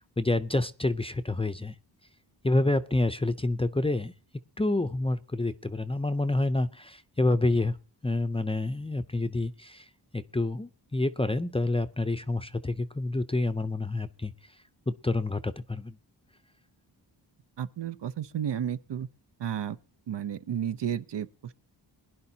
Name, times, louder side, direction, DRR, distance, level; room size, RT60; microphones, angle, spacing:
voice 1, 0.2-1.7 2.4-4.1 4.6-7.8 8.0-9.8 10.1-14.3 14.9-15.9, left 2 dB, 15° left, 0.5 m, -28 dB
voice 2, 17.6-19.1 19.4-19.8 20.1-21.5, right 9 dB, 65° right, 0.7 m, -32 dB
22.0 x 11.0 x 2.8 m
wide cardioid pair, 100°, 45 cm